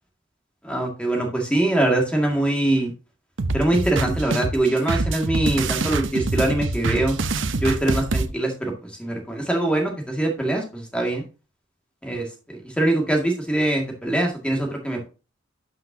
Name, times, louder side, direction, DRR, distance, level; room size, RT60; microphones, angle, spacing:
voice 1, 0.6-2.9 3.5-7.2 7.6-11.2 12.0-15.1, right 1 dB, 5° left, 1 dB, 2.0 m, -23 dB
sound 1, 3.4-8.3, right 3 dB, 65° right, 0.8 m, -25 dB
12.0 x 5.7 x 2.8 m, 0.31 s
head